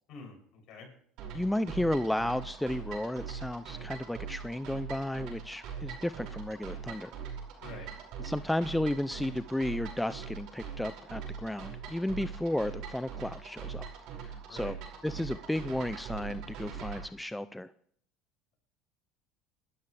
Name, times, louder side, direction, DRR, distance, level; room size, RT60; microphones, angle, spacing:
voice 1, 0.1-0.9 7.6-7.9 14.5-14.7, left 4 dB, 60° left, 1 dB, 7.4 m, -47 dB
sound 1, 1.2-17.0, right 6 dB, 65° right, 5.6 m, -42 dB
voice 2, 1.3-7.1 8.2-13.9 14.2-14.8 15.0-17.7, left 1 dB, 5° left, 13 dB, 0.5 m, -33 dB
24.5 x 13.0 x 3.4 m, 0.62 s
supercardioid pair, 100°, 0 cm